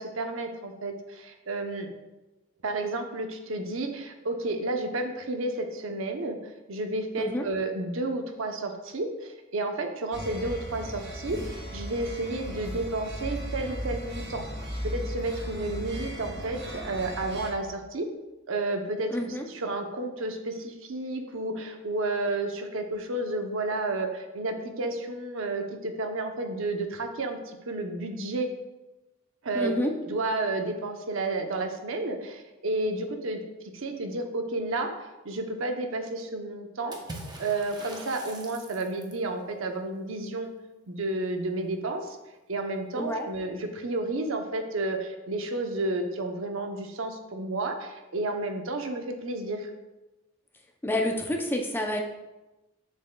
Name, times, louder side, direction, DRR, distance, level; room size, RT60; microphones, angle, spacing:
voice 1, 0.0-1.9 2.6-6.4 6.7-14.4 14.8-18.1 18.5-28.5 29.4-29.7 30.1-33.4 33.7-37.0 37.4-40.5 40.9-42.2 42.5-49.7, right 2 dB, 70° right, 5 dB, 0.7 m, -31 dB
voice 2, 7.2-7.5 19.1-19.4 29.5-29.9 42.9-43.3 50.8-52.0, left 1 dB, 10° left, 2 dB, 0.4 m, -28 dB
sound 1, 10.1-17.5, equal, 55° right, 1.2 m, -36 dB
Water / Splash splatter, 36.9-39.3, right 2 dB, 20° right, 0.7 m, -43 dB
7.0 x 6.4 x 2.2 m, 1.1 s
head